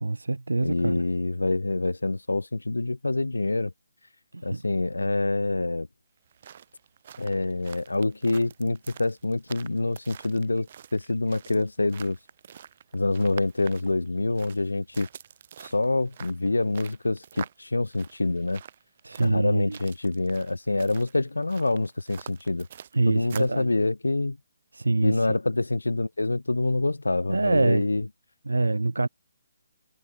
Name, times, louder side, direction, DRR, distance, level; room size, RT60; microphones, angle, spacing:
voice 1, 0.0-1.0 4.3-4.6 19.0-19.8 22.9-23.7 24.7-25.4 27.3-27.9 28.5-29.1, right 2 dB, 80° right, 0.7 m, -25 dB
voice 2, 0.6-3.7 4.4-5.9 7.2-12.2 12.9-15.1 15.6-18.6 19.2-22.7 23.1-24.4 25.0-28.0, left 2 dB, 80° left, 0.3 m, -26 dB
sound 1, 6.2-23.6, right 9 dB, 45° right, 0.9 m, -46 dB
figure-of-eight pair, 145°, 0 cm